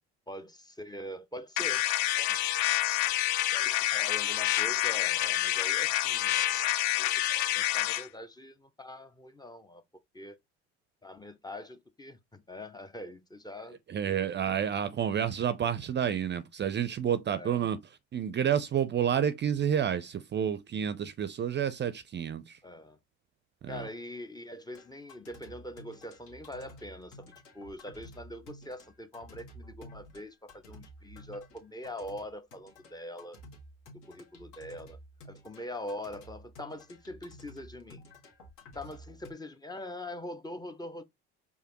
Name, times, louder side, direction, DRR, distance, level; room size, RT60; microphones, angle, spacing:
voice 1, 0.3-1.8 2.1-2.4 3.5-9.8 10.1-10.4 11.0-13.8 17.3-17.7 22.6-23.0 23.7-33.4 34.1-35.0 35.2-38.0 38.7-41.0, left 1 dB, 10° left, 0.6 m, -43 dB
sound 1, 1.6-8.1, left 15 dB, 80° left, 0.5 m, -28 dB
voice 2, 13.9-17.8 18.1-22.6 23.6-23.9, right 9 dB, 30° right, 0.5 m, -29 dB
sound 2, 24.7-39.3, equal, 65° left, 1.6 m, -52 dB
4.8 x 2.6 x 2.9 m
hypercardioid pair, 70°, 34 cm